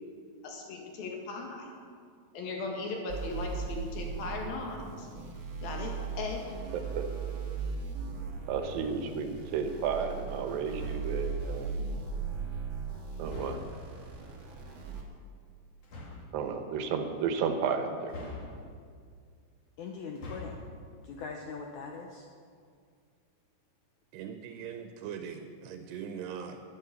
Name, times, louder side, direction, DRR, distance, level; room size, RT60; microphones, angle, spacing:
voice 1, 0.4-1.7 2.3-5.1 5.6-5.9 6.2-6.5, left 3 dB, 65° left, 1 dB, 3.6 m, -37 dB
sound 1, 3.1-15.0, right 5 dB, 50° right, 1.6 m, -38 dB
voice 2, 7.0-7.4 8.5-11.7 13.2-13.6 16.3-18.1, right 6 dB, 70° right, 6 dB, 2.5 m, -32 dB
sound 2, 10.7-11.3 13.2-13.9 15.8-16.3 18.1-18.9 20.0-20.7, left 2 dB, 45° left, 2.7 m, -43 dB
voice 3, 19.8-20.6 21.0-22.3, left 5 dB, 85° left, 2 dB, 1.6 m, -41 dB
voice 4, 24.1-26.6, right 7 dB, 90° right, 7 dB, 2.9 m, -41 dB
12.5 x 10.5 x 6.9 m, 2.2 s
omnidirectional pair, 4.7 m